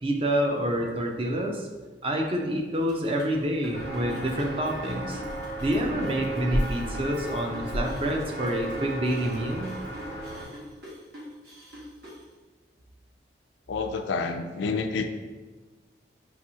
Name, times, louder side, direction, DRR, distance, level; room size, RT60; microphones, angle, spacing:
voice 1, 0.0-1.7 2.0-5.2 5.6-9.7, right 1 dB, 30° right, 2 dB, 0.4 m, -27 dB
sound 1, 2.7-12.2, equal, 60° right, 1.3 m, -44 dB
Walk footsteps, 3.7-10.4, equal, 75° right, 1.0 m, -33 dB
voice 2, 13.7-15.0, left 4 dB, 80° left, 6 dB, 0.4 m, -28 dB
5.7 x 2.7 x 2.7 m, 1.3 s
head